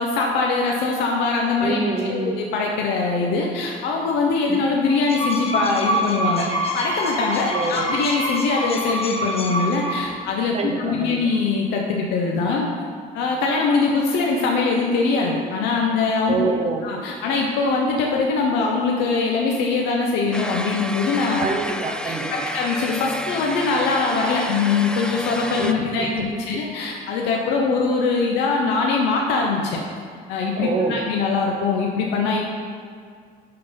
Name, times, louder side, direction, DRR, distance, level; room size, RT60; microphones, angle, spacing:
voice 1, 0.0-6.5 6.7-12.7 13.1-16.4 16.8-21.4 22.0-22.1 22.5-29.8 30.3-32.4, left 4 dB, 90° left, -1 dB, 0.9 m, -22 dB
voice 2, 1.6-2.3 4.5-4.6 7.4-7.8 10.5-11.2 16.3-16.8 21.4-22.3 25.6-26.3 30.6-31.0, right 4 dB, 40° right, 3 dB, 1.1 m, -26 dB
sound 1, 4.9-10.3, equal, 35° left, 1.3 m, -26 dB
sound 2, 20.3-25.7, left 1 dB, 5° left, 0.4 m, -31 dB
11.5 x 4.0 x 5.2 m, 2.1 s
cardioid pair, 110°, 17 cm